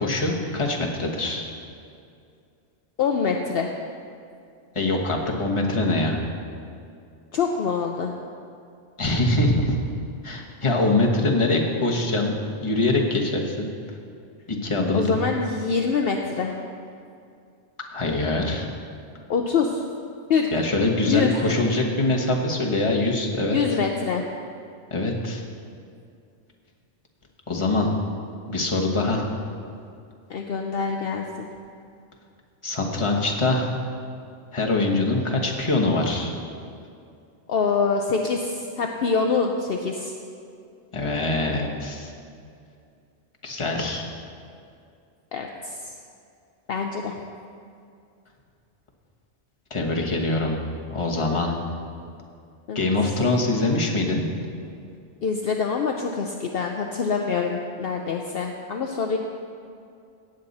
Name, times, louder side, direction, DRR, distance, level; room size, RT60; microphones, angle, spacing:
voice 1, 0.0-1.4 4.7-6.2 9.0-9.8 10.2-13.7 14.5-15.2 17.9-18.7 20.5-23.6 24.9-25.4 27.5-27.9 28.5-29.3 32.6-33.8 34.5-36.3 40.9-42.1 43.4-44.0 49.7-50.6 50.9-51.5 52.7-54.3, left 2 dB, 25° left, 0 dB, 1.2 m, -23 dB
voice 2, 3.0-3.7 7.3-8.1 14.9-16.6 19.3-19.8 20.3-20.5 21.1-21.3 23.5-24.2 30.3-31.5 37.5-40.1 45.3-45.9 46.7-47.2 52.7-52.8 55.2-59.2, left 5 dB, 60° left, 2 dB, 0.8 m, -25 dB
17.5 x 7.8 x 4.1 m, 2.4 s
omnidirectional pair, 1.2 m